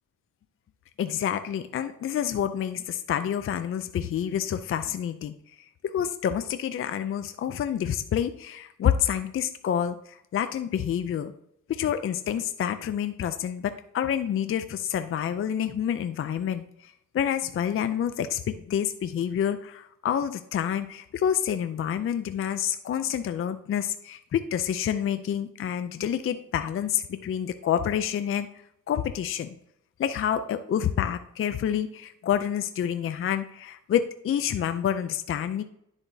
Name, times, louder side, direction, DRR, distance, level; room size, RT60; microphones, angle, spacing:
voice 1, 1.0-11.3 11.7-28.5 28.9-29.5 30.0-35.6, left 9 dB, 45° left, 10 dB, 0.4 m, -28 dB
10.0 x 7.0 x 2.7 m, 0.75 s
wide cardioid pair, 140°, 32 cm